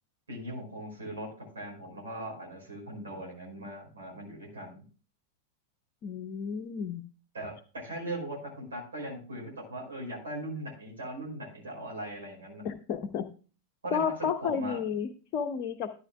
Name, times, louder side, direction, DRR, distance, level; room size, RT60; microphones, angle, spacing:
voice 1, 0.3-4.8 7.3-12.7 13.8-14.8, right 1 dB, 70° right, -2 dB, 5.1 m, -39 dB
voice 2, 6.0-7.0 12.6-13.3 13.9-16.0, left 7 dB, 40° left, 6 dB, 0.8 m, -32 dB
13.0 x 9.5 x 2.3 m, 0.37 s
figure-of-eight pair, 90°, 0 cm